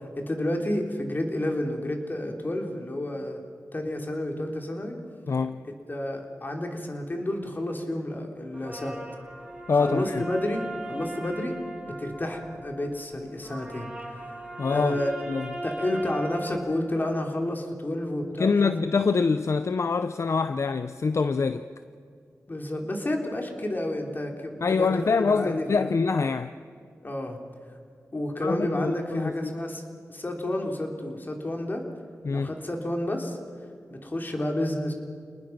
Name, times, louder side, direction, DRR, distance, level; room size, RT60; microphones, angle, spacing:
voice 1, 0.0-3.4 3.7-5.0 5.6-9.0 9.7-15.1 15.6-18.7 22.5-26.0 27.0-27.4 28.1-29.8 30.1-31.8 32.3-33.4 33.9-34.9, left 1 dB, 35° left, 3.5 m, -30 dB
voice 2, 5.3-5.6 9.7-10.2 14.6-15.0 15.3-15.5 18.4-21.6 24.6-26.5 28.4-29.5 32.2-32.5, left 4 dB, 60° left, 0.6 m, -25 dB
sound 1, 8.5-16.5, right 1 dB, 15° right, 6.1 m, -38 dB
29.0 x 19.5 x 6.0 m
wide cardioid pair, 75°, 6 cm